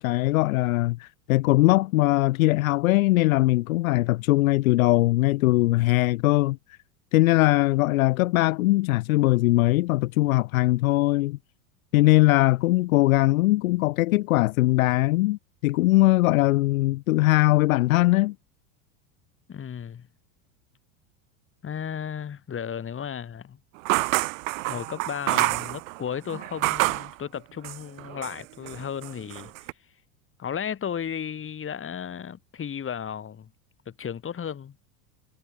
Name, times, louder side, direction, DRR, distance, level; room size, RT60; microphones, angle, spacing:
voice 1, 0.0-6.6 7.1-11.4 11.9-18.3, left 19 dB, 75° left, 1.5 m, -21 dB
voice 2, 19.5-20.1 21.6-23.6 24.7-29.5 30.4-33.5 33.9-34.8, left 8 dB, 30° left, 7.0 m, -34 dB
sound 1, 23.8-27.1 27.6-28.4 28.6-29.7, right 23 dB, 70° right, 3.1 m, -27 dB
hypercardioid pair, 100°, 41 cm